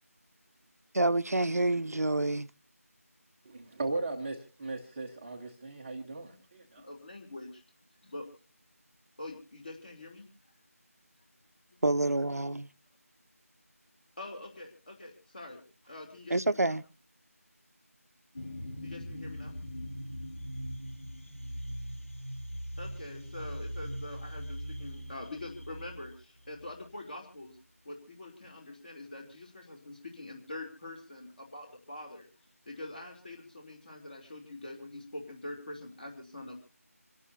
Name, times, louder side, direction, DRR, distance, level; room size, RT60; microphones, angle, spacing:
voice 1, 0.9-2.5 11.8-12.7 16.3-16.8, right 2 dB, 80° right, 0.7 m, -27 dB
voice 2, 3.4-6.9, right 2 dB, 10° right, 0.7 m, -37 dB
voice 3, 6.8-7.6 8.0-8.3 9.2-10.3 14.2-16.8 18.8-19.5 22.8-27.6 27.8-32.3 32.6-36.6, left 2 dB, 35° left, 3.2 m, -44 dB
sound 1, 18.4-26.9, equal, 60° left, 3.3 m, -41 dB
27.0 x 12.5 x 2.7 m
figure-of-eight pair, 170°, 8 cm